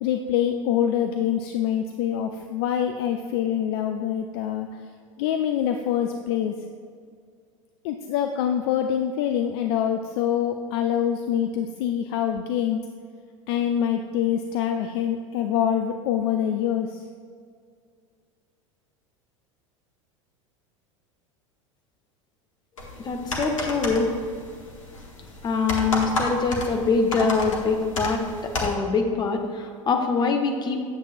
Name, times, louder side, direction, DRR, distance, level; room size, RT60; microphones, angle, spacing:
voice 1, 0.0-4.7 5.2-6.5 7.8-12.8 13.5-17.0, left 9 dB, 50° left, 6 dB, 0.4 m, -25 dB
sound 1, 22.8-28.8, left 2 dB, 70° left, 1.1 m, -32 dB
voice 2, 23.0-24.1 25.4-30.8, left 4 dB, 25° left, 4 dB, 0.8 m, -24 dB
9.5 x 7.3 x 2.5 m, 2.1 s
figure-of-eight pair, 80°, 17 cm